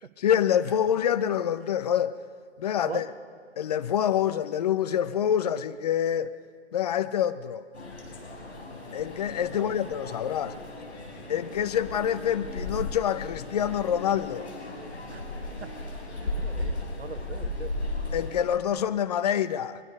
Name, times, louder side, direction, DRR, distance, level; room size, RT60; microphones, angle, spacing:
voice 1, 0.2-2.2 2.6-3.1 3.6-6.3 6.7-7.6 8.9-10.6 11.3-14.5 18.1-19.8, left 9 dB, 35° left, 0.6 m, -26 dB
sound 1, 7.7-18.4, left 2 dB, 70° left, 4.5 m, -36 dB
voice 2, 15.1-17.8, right 5 dB, 65° right, 1.2 m, -42 dB
23.0 x 21.0 x 5.4 m
figure-of-eight pair, 125°, 35 cm